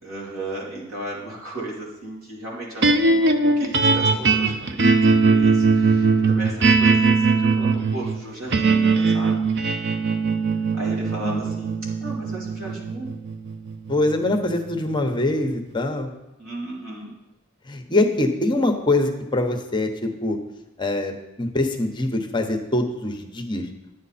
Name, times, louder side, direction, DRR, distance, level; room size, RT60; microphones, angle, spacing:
voice 1, 0.0-9.5 10.7-13.2 16.4-17.2, right 1 dB, 80° right, -5 dB, 3.3 m, -35 dB
sound 1, 2.8-15.1, right 4 dB, 60° right, 0.7 m, -20 dB
voice 2, 11.0-11.4 13.9-16.1 17.7-20.4 20.8-21.1 21.4-23.6, left 2 dB, 20° left, 5 dB, 0.9 m, -23 dB
11.0 x 8.5 x 4.2 m, 0.96 s
head